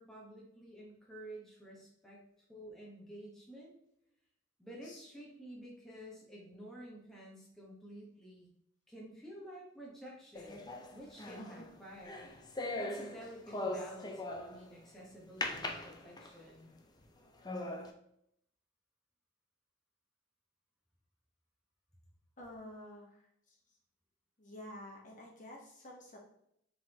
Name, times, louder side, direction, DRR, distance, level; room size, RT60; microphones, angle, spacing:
voice 1, 0.0-2.2 2.5-3.7 4.6-8.5 8.9-10.6 10.9-12.3 12.8-16.7, equal, ahead, -5 dB, 1.0 m, -51 dB
sound 1, 10.3-14.7 15.4-16.5 17.0-17.1 17.4-17.9, left 2 dB, 20° left, 0.5 m, -40 dB
voice 2, 22.4-23.6 24.4-26.2, left 1 dB, 40° left, -1 dB, 1.2 m, -50 dB
4.6 x 3.8 x 2.9 m, 0.73 s
head